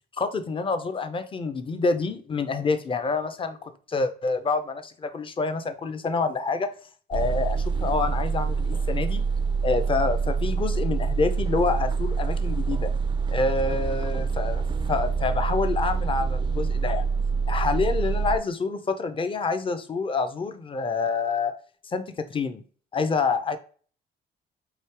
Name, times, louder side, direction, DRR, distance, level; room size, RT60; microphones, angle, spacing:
voice 1, 0.2-6.7 7.1-9.2 9.6-12.9 13.3-17.1 17.5-21.5 21.9-22.6 22.9-23.6, left 4 dB, 25° left, 0.5 m, -27 dB
sound 1, 7.1-18.4, right 5 dB, 25° right, 0.4 m, -26 dB
3.2 x 2.7 x 4.5 m
cardioid pair, 90°, 20 cm